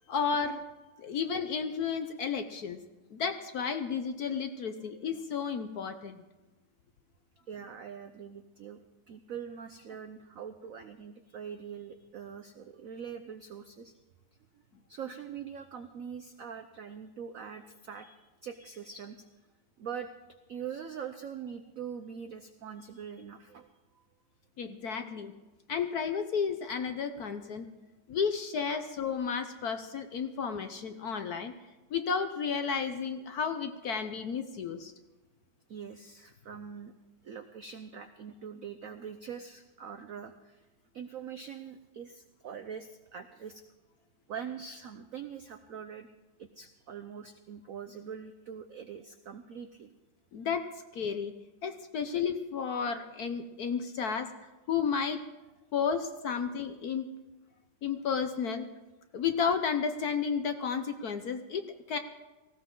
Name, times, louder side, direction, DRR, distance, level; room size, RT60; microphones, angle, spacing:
voice 1, 0.1-0.6 1.0-2.8 3.1-6.2 24.6-25.3 25.7-27.7 28.1-31.5 31.9-34.9 50.3-50.7 50.9-51.3 51.6-55.2 55.7-57.1 57.8-58.7 59.1-62.0, left 6 dB, 60° left, 8 dB, 1.0 m, -32 dB
voice 2, 4.8-5.1 7.5-8.8 9.1-13.9 14.9-19.3 19.8-20.1 20.5-23.7 23.9-24.0 35.7-36.9 37.2-40.6 40.9-43.6 44.3-46.1 46.4-49.9, right 7 dB, 75° right, 8 dB, 0.7 m, -43 dB
18.5 x 16.0 x 3.8 m, 1.1 s
omnidirectional pair, 2.3 m